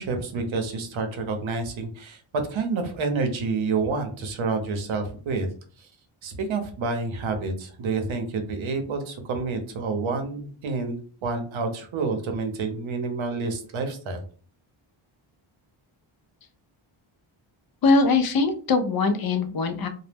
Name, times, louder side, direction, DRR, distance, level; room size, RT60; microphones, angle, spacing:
voice 1, 0.0-2.2 2.5-5.5 5.8-5.9 6.2-14.2, right 4 dB, 65° right, 6 dB, 0.7 m, -28 dB
voice 2, 17.8-19.9, left 3 dB, 50° left, 6 dB, 0.4 m, -21 dB
2.1 x 2.0 x 3.3 m, 0.42 s
cardioid pair, 100°, 50 cm